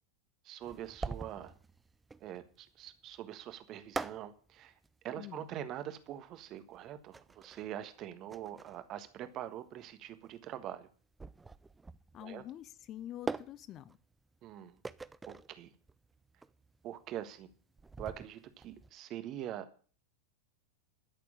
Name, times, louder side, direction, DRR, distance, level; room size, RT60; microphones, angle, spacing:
voice 1, 0.4-1.5 2.2-4.7 5.0-10.9 12.2-12.4 14.4-14.8 15.3-15.7 16.8-17.5 18.0-19.7, right 11 dB, 35° right, 1.4 m, -44 dB
sound 1, 0.6-18.9, right 3 dB, 10° right, 0.5 m, -45 dB
voice 2, 5.2-5.5 12.1-14.0, left 12 dB, 30° left, 0.7 m, -46 dB
12.5 x 6.8 x 8.4 m
figure-of-eight pair, 90°, 0 cm